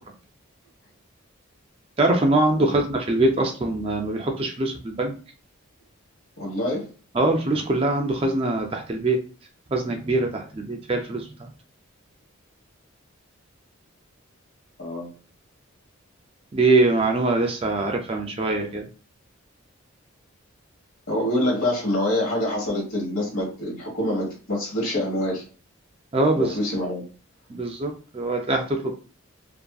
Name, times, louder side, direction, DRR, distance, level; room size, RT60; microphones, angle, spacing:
voice 1, 2.0-5.1 7.1-9.2 9.7-11.2 16.5-18.8 26.1-26.5 27.5-28.9, right 2 dB, 25° right, 3 dB, 0.3 m, -23 dB
voice 2, 6.4-6.9 14.8-15.1 21.1-25.4 26.4-27.0, left 1 dB, 70° left, -2 dB, 1.3 m, -26 dB
2.6 x 2.5 x 2.3 m, 0.38 s
head